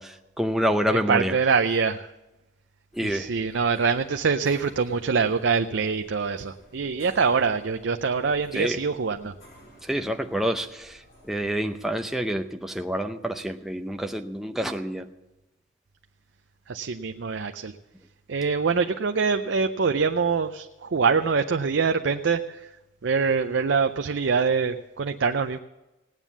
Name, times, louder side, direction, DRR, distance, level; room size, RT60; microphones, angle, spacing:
voice 1, 0.0-1.4 2.9-3.3 8.5-8.8 9.8-15.1, equal, ahead, 4 dB, 0.6 m, -28 dB
voice 2, 0.9-2.1 3.0-9.3 16.7-17.7 18.3-22.6 23.0-25.6, right 5 dB, 60° right, 7 dB, 0.5 m, -24 dB
sound 1, 2.9-11.9, left 1 dB, 50° left, 4.7 m, -54 dB
18.0 x 9.1 x 7.3 m, 1.0 s
head